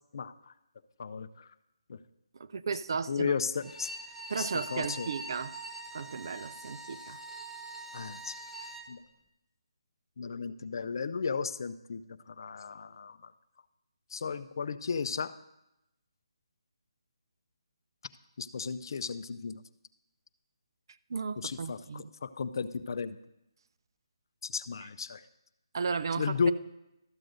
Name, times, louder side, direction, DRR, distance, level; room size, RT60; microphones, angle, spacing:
voice 1, 0.1-0.5 1.0-1.5 1.9-2.0 3.1-3.9 4.4-5.1 7.9-8.4 8.9-9.0 10.2-12.0 12.3-13.3 14.1-15.3 18.4-19.6 21.4-23.2 24.4-25.2 26.2-26.5, left 5 dB, 50° left, 0.5 m, -34 dB
voice 2, 2.4-3.3 4.3-5.6 5.9-7.2 21.1-22.1 25.7-26.5, right 5 dB, 55° right, 0.4 m, -35 dB
Bowed string instrument, 3.6-8.9, right 2 dB, ahead, 0.7 m, -43 dB
13.0 x 7.6 x 3.9 m
figure-of-eight pair, 160°, 3 cm